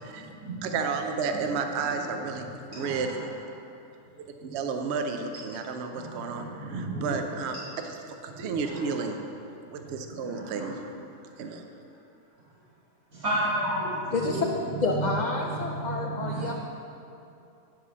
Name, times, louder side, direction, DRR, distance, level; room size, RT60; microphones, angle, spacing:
voice 1, 0.6-2.5 2.7-3.3 4.2-9.2 9.7-10.8 11.4-11.6, right 5 dB, 60° right, 5 dB, 0.8 m, -32 dB
voice 2, 2.7-3.2 5.9-7.2 8.4-8.5 10.2-10.7 13.1-14.3 14.8-14.9 15.7-16.5, right 1 dB, 90° right, -11 dB, 2.5 m, -32 dB
voice 3, 14.1-14.5 14.8-16.5, left 3 dB, 65° left, 0 dB, 0.4 m, -29 dB
10.0 x 4.1 x 6.1 m, 2.7 s
omnidirectional pair, 1.5 m